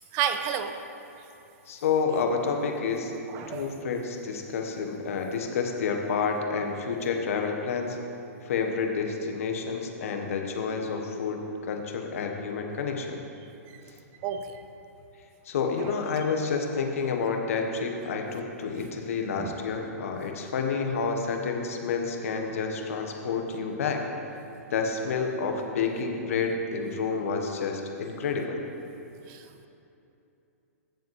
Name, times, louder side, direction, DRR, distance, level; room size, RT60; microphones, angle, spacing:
voice 1, 0.1-0.7 3.3-3.7 14.2-14.6 19.4-19.5 29.3-29.4, right 8 dB, 35° right, 8 dB, 0.6 m, -30 dB
voice 2, 1.7-3.1 3.5-8.0 8.4-13.2 15.5-24.0 24.7-28.6, left 5 dB, 65° left, 3 dB, 1.2 m, -29 dB
15.0 x 7.1 x 3.2 m, 2.8 s
hypercardioid pair, 120°, 8 cm